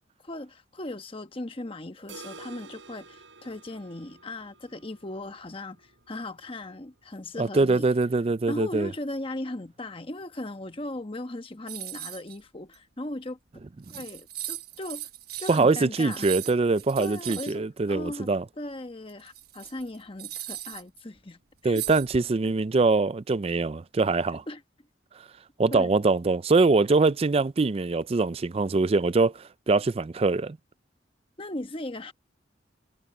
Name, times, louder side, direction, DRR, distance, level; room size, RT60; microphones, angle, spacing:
voice 1, 0.2-7.9 8.5-13.4 13.9-15.1 15.4-16.3 17.0-21.8 24.3-24.6 25.7-26.0 31.4-32.1, left 1 dB, 30° left, 1.1 m, -38 dB
sound 1, 2.1-7.9 8.2-8.3 8.7-8.8 9.3-9.4 10.2-10.3, right 4 dB, 80° right, 5.1 m, -50 dB
voice 2, 7.4-8.9 15.5-18.4 21.6-24.4 25.6-30.6, right 3 dB, 30° right, 0.4 m, -23 dB
sound 2, 11.7-12.4 12.7-12.8 13.6-13.7 13.8-17.6 19.1-21.0 21.7-22.5, right 12 dB, 55° right, 1.3 m, -38 dB
head